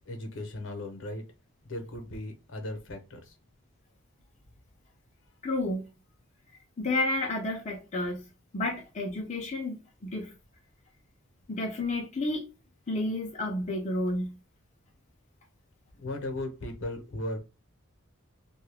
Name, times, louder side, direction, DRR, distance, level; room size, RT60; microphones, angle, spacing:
voice 1, 0.1-1.2 1.6-3.2 16.0-17.4, left 1 dB, 65° left, 0.8 m, -37 dB
voice 2, 5.4-5.9 6.8-8.3 8.5-10.3 11.5-12.4 12.9-14.4, left 2 dB, 35° left, 0.5 m, -31 dB
2.6 x 2.3 x 3.3 m
head